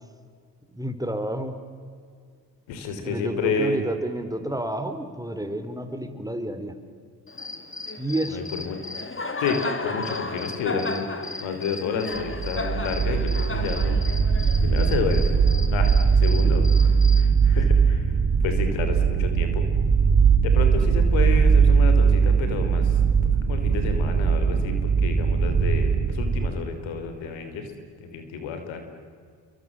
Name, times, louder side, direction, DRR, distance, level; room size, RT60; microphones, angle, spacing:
voice 1, 0.7-1.5 3.0-6.8 8.0-8.5 16.4-16.7, right 1 dB, 10° right, 8 dB, 3.5 m, -30 dB
voice 2, 2.7-3.8 8.3-8.8 9.4-11.0 11.4-14.0 14.6-15.3 15.7-16.7 16.9-18.1 18.4-19.7 20.4-23.0 23.5-27.7 28.0-28.8, left 5 dB, 75° left, 7 dB, 3.7 m, -30 dB
Cricket, 7.3-17.3, left 3 dB, 25° left, 2.9 m, -34 dB
sound 1, 12.2-26.5, right 6 dB, 45° right, 2.8 m, -20 dB
29.0 x 23.5 x 7.5 m, 2.1 s
hypercardioid pair, 55°, 46 cm